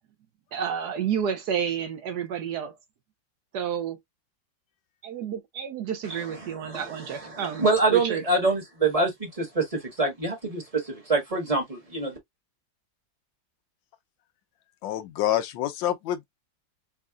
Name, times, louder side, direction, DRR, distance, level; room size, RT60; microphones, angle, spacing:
voice 1, 0.5-2.8 3.5-4.0 5.0-8.2, right 8 dB, 65° right, 1.2 m, -30 dB
voice 2, 6.1-12.2, right 3 dB, 20° right, 1.3 m, -26 dB
voice 3, 14.8-16.3, left 12 dB, 85° left, 1.4 m, -27 dB
4.2 x 2.4 x 2.4 m
omnidirectional pair, 2.0 m